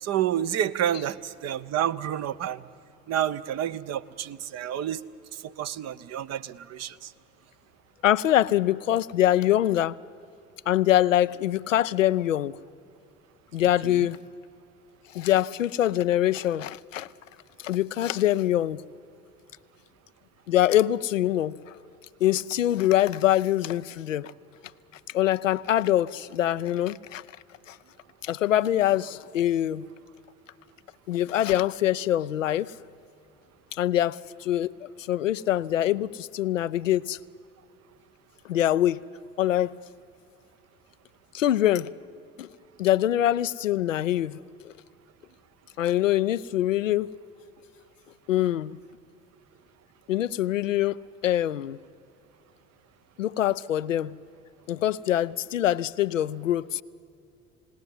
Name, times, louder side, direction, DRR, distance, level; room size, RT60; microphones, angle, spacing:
voice 1, 0.0-2.6 3.1-5.0 5.3-7.1 13.8-14.1, right 10 dB, 45° right, 0.8 m, -29 dB
voice 2, 8.0-10.0 10.7-12.6 13.5-14.2 15.1-17.1 17.6-18.8 20.5-21.6 22.2-24.3 25.1-27.2 27.7-27.8 28.2-29.8 31.1-32.7 33.7-37.2 38.4-39.0 39.4-39.8 41.3-41.9 42.4-42.5 42.8-44.7 45.8-47.1 48.3-48.8 50.1-51.0 51.2-51.8 53.2-54.2 54.7-56.8, left 12 dB, 85° left, 0.5 m, -24 dB
28.0 x 18.0 x 9.7 m
figure-of-eight pair, 60°, 37 cm